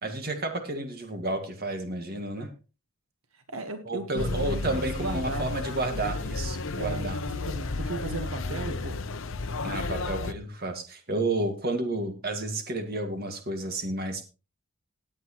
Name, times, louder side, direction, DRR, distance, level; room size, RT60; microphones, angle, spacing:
voice 1, 0.0-2.5 3.9-7.2 9.6-14.2, right 2 dB, 45° right, 6 dB, 1.9 m, -31 dB
voice 2, 3.3-5.5 6.7-9.0 10.2-10.3, right 2 dB, 75° right, 7 dB, 1.3 m, -36 dB
sound 1, 4.2-10.3, left 3 dB, 65° left, 0.8 m, -32 dB
18.5 x 7.9 x 3.0 m, 0.33 s
head